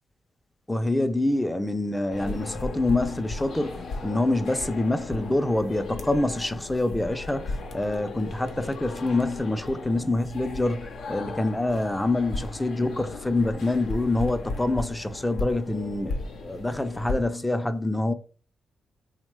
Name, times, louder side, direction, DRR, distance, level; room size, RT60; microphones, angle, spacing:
voice 1, 0.7-18.1, left 2 dB, 15° left, 0.5 m, -26 dB
sound 1, 2.1-17.2, left 3 dB, 70° left, 0.6 m, -36 dB
2.9 x 2.1 x 3.1 m
supercardioid pair, 45°, 0 cm